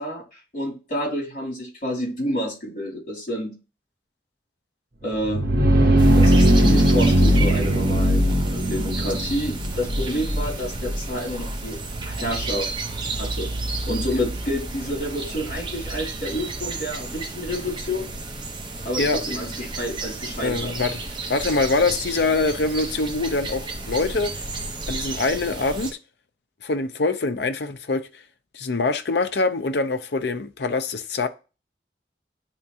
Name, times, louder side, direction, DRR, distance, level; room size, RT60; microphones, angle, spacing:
voice 1, 0.0-3.6 5.0-5.5 6.1-11.8 12.0-12.7 13.2-13.5 13.8-18.1 18.8-20.7, equal, 45° left, 2.9 m, -29 dB
sound 1, 5.1-16.7, right 1 dB, 65° right, 1.0 m, -21 dB
sound 2, 6.0-25.9, right 3 dB, 25° right, 0.8 m, -33 dB
voice 2, 20.4-21.0 21.3-24.3 24.9-26.0 26.6-28.1 28.5-31.3, left 3 dB, 75° left, 0.6 m, -24 dB
9.7 x 3.5 x 2.8 m
head